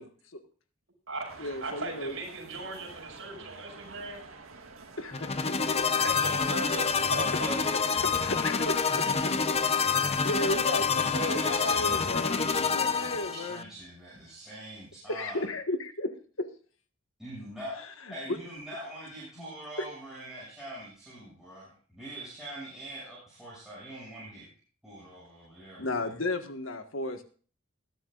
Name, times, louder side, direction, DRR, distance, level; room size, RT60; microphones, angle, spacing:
voice 1, 0.0-0.4 1.4-2.2 5.0-5.8 8.0-9.7 9.9-13.6 15.1-16.5 18.3-18.4 19.4-19.5 19.8-19.9 25.8-27.2, left 2 dB, 70° left, 7 dB, 1.6 m, -34 dB
voice 2, 1.1-4.2 6.0-7.7, right 2 dB, 70° right, 0 dB, 5.9 m, -38 dB
sound 1, 1.3-12.4, right 3 dB, 85° right, 1.8 m, -47 dB
sound 2, 5.1-13.6, left 5 dB, 30° left, 0.8 m, -27 dB
voice 3, 11.1-15.4 17.2-24.5 24.8-26.1, right 1 dB, ahead, -9 dB, 7.2 m, -43 dB
20.0 x 11.0 x 2.5 m, 0.42 s
head